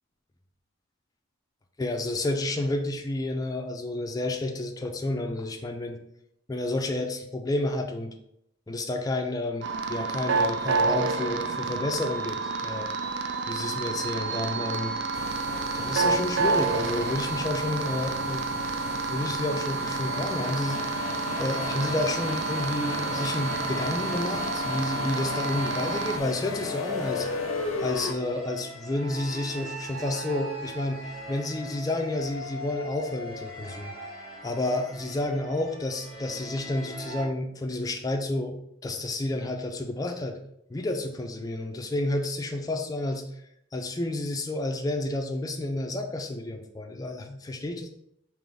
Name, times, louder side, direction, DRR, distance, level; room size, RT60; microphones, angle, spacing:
voice 1, 1.8-6.0 6.5-8.1 8.7-12.9 13.5-15.0 15.7-20.8 21.4-27.3 27.8-33.9 34.4-38.6 38.8-40.4 40.7-43.4 43.7-47.9, left 2 dB, 15° left, 3 dB, 0.4 m, -30 dB
sound 1, 9.6-26.2, right 4 dB, 55° right, 0.3 m, -29 dB
sound 2, 15.1-28.1, left 4 dB, 85° left, 0.5 m, -36 dB
sound 3, 21.3-37.2, equal, 80° right, 1.4 m, -41 dB
3.8 x 3.0 x 3.4 m, 0.77 s
head